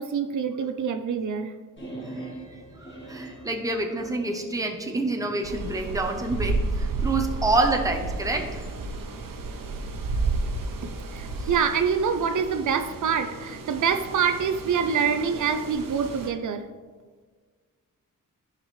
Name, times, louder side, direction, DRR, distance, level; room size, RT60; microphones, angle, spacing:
voice 1, 0.0-1.5 10.8-16.7, right 6 dB, 65° right, 8 dB, 0.6 m, -26 dB
sound 1, 1.8-5.5, right 2 dB, 35° left, 2.4 m, -41 dB
voice 2, 2.8-8.6 11.3-11.5, right 2 dB, 10° right, 3 dB, 0.7 m, -27 dB
sound 2, 5.4-16.3, right 3 dB, 80° right, 1.0 m, -32 dB
13.0 x 5.2 x 3.2 m, 1.5 s
wide cardioid pair, 160°, 33 cm